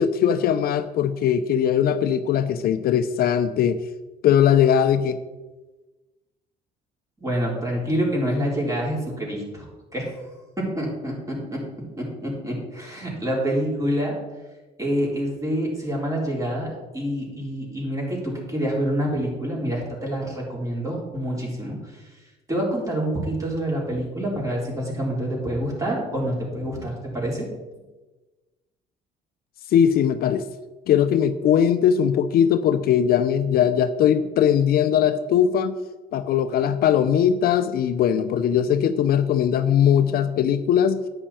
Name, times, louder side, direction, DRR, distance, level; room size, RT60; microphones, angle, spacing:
voice 1, 0.0-3.8 4.2-5.2 29.7-30.4 30.9-35.7 36.1-41.0, left 9 dB, 65° left, 10 dB, 0.6 m, -20 dB
voice 2, 7.2-9.7 9.9-10.2 10.6-11.6 11.9-14.2 14.8-21.8 22.5-27.5, equal, 20° right, -3 dB, 4.1 m, -27 dB
10.0 x 8.9 x 4.4 m, 1.2 s
cardioid pair, 110°, 17 cm